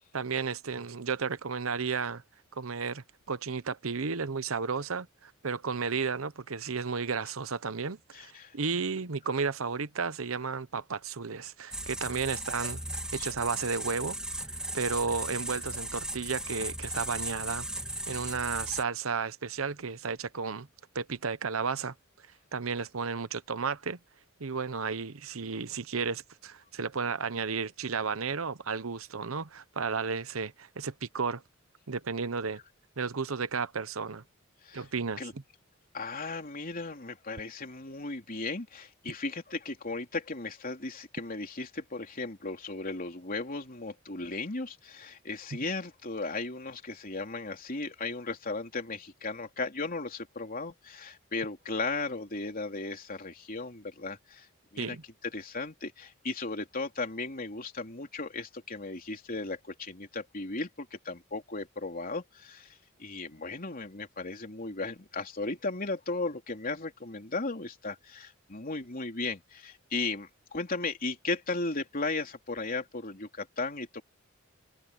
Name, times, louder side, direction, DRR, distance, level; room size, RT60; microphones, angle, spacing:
voice 1, 0.1-2.2 2.5-12.8 13.1-14.2 14.4-17.7 18.1-20.7 20.9-21.9 22.5-24.0 24.4-31.4 31.9-32.6 33.0-34.2 34.7-35.2 54.8-55.0, right 5 dB, 85° right, 0.9 m, -33 dB
voice 2, 8.1-8.5 13.1-13.3 34.6-34.9 35.2-35.3 35.9-54.5 54.7-55.0 55.2-74.0, left 3 dB, 45° left, 3.4 m, -36 dB
sound 1, 11.7-18.8, right 1 dB, 5° right, 2.9 m, -37 dB
head